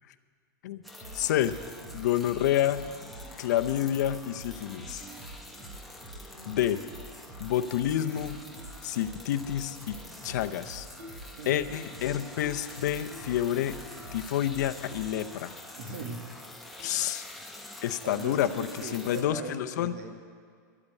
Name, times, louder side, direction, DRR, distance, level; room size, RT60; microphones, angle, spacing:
sound 1, 0.8-19.2, left 1 dB, ahead, 0.9 m, -47 dB
sound 2, 1.0-15.1, right 2 dB, 25° right, 1.7 m, -47 dB
voice 1, 1.1-1.5 1.9-2.9 3.4-5.0 6.5-6.8 7.4-8.4 8.8-10.0 10.2-10.9 11.5-13.8 14.1-15.5 16.8-17.3 17.8-18.7 18.9-19.9, left 11 dB, 65° left, 9 dB, 0.7 m, -28 dB
sound 3, 11.0-11.3 11.7-12.0 12.4-12.7 13.1-13.4 13.8-13.9 14.6-14.7 15.3-15.4 16.1-16.2 16.8-17.0, left 2 dB, 80° right, 4.4 m, -49 dB
voice 2, 15.8-16.2 18.0-20.1, right 4 dB, 55° right, 3 dB, 1.9 m, -39 dB
12.0 x 8.7 x 8.3 m, 2.1 s
supercardioid pair, 165°, 10 cm